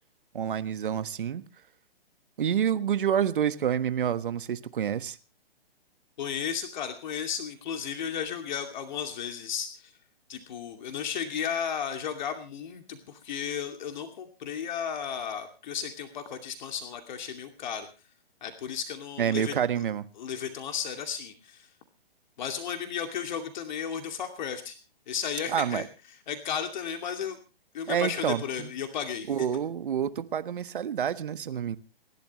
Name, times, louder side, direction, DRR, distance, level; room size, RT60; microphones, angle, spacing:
voice 1, 0.3-1.5 2.4-5.2 19.2-20.0 25.5-25.8 27.9-28.7 29.3-31.8, right 8 dB, 60° right, 1.5 m, -28 dB
voice 2, 6.2-10.0 10.3-17.9 18.4-19.8 20.2-21.7 22.4-24.8 25.1-25.9 26.3-27.4 27.7-29.5, left 7 dB, 50° left, 2.5 m, -34 dB
29.0 x 12.0 x 3.1 m
figure-of-eight pair, 130°, 30 cm